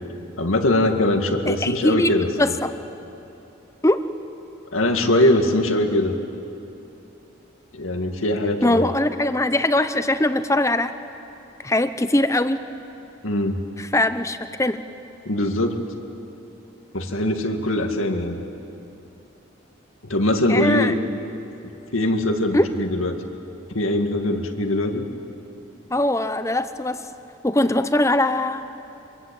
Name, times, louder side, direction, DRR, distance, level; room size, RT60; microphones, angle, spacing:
voice 1, 0.4-2.5 4.7-6.1 7.7-8.9 13.2-13.6 15.3-15.8 16.9-18.4 20.1-21.0 21.9-23.2 23.7-25.1, left 1 dB, 90° left, 4 dB, 2.1 m, -22 dB
voice 2, 1.4-2.1 2.4-2.7 3.8-4.0 8.6-10.9 11.6-12.6 13.8-14.8 20.5-20.9 22.5-22.7 25.9-27.0 27.4-28.6, left 1 dB, 15° left, 11 dB, 0.7 m, -21 dB
25.5 x 22.5 x 8.9 m, 2.9 s
head